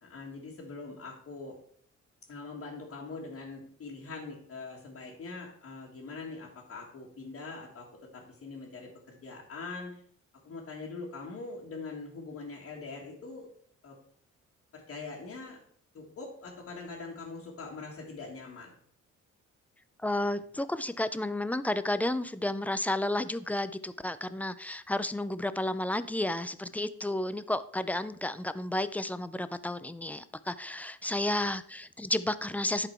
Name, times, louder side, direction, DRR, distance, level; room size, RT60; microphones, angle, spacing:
voice 1, 0.0-1.6 2.3-10.0 10.4-13.5 13.8-14.0 14.7-15.6 15.9-18.7, left 3 dB, 50° left, -4 dB, 1.6 m, -43 dB
voice 2, 20.0-32.9, left 1 dB, 5° left, 14 dB, 0.3 m, -32 dB
11.0 x 4.1 x 4.4 m, 0.62 s
cardioid pair, 95°, 29 cm